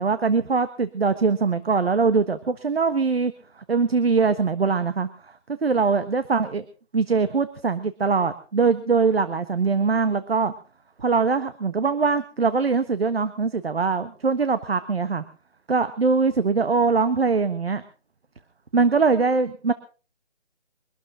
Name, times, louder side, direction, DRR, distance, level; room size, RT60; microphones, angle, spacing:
voice 1, 0.0-3.3 3.7-5.1 5.6-6.6 6.9-10.5 11.0-15.2 15.7-17.8 18.7-19.7, right 4 dB, 60° right, 12 dB, 1.4 m, -22 dB
24.0 x 13.0 x 3.8 m, 0.35 s
hypercardioid pair, 175°, 34 cm